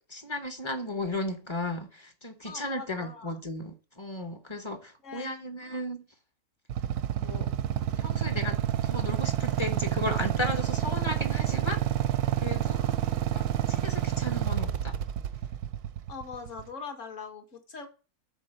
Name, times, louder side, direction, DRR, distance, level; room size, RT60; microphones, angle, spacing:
voice 1, 0.1-6.0 7.2-7.5 8.0-8.6 8.8-11.9 12.4-12.8 13.3-15.0, left 1 dB, 25° left, 0.7 m, -35 dB
voice 2, 2.4-3.4 5.0-5.8 12.7-13.0 16.1-17.9, left 5 dB, 55° left, 1.6 m, -42 dB
Motorcycle / Idling, 6.7-16.6, right 11 dB, 90° right, 1.1 m, -29 dB
8.4 x 4.0 x 6.5 m
omnidirectional pair, 1.6 m